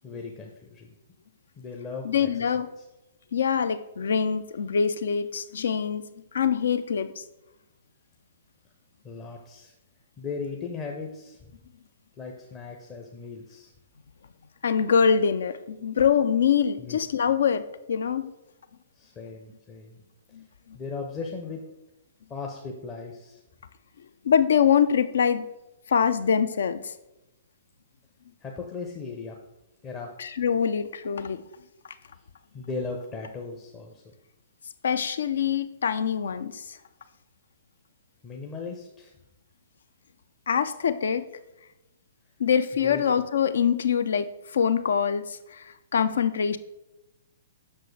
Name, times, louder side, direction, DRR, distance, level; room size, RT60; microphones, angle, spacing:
voice 1, 0.0-0.9 1.6-2.3 2.8-2.9 9.0-9.7 10.2-11.5 12.2-13.7 16.8-17.0 19.0-20.0 20.7-21.6 22.3-23.4 28.4-29.4 29.8-30.1 32.5-34.0 38.2-39.1 42.8-43.0, left 4 dB, 20° left, 1 dB, 0.7 m, -37 dB
voice 2, 2.0-2.7 3.3-6.0 6.3-7.2 14.6-18.3 20.3-20.4 24.2-25.4 25.9-26.9 30.2-31.4 34.8-36.8 40.5-41.2 42.4-45.6 45.9-46.6, left 7 dB, 60° left, 13 dB, 0.4 m, -24 dB
7.5 x 6.0 x 3.3 m, 0.94 s
figure-of-eight pair, 115°, 0 cm